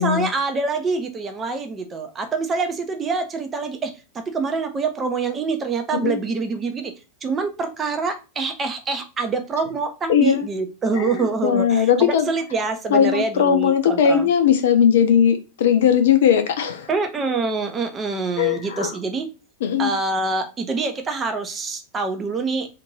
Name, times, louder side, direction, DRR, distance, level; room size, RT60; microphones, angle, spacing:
voice 1, 0.0-3.9 4.3-6.9 7.2-14.3 16.9-19.3 19.8-22.7, right 4 dB, 20° right, 6 dB, 0.6 m, -25 dB
voice 2, 10.1-10.5 10.9-12.3 12.9-16.9 18.4-18.9 19.6-19.9, left 8 dB, 60° left, 7 dB, 0.6 m, -18 dB
2.5 x 2.5 x 3.2 m, 0.30 s
figure-of-eight pair, 90°, 0 cm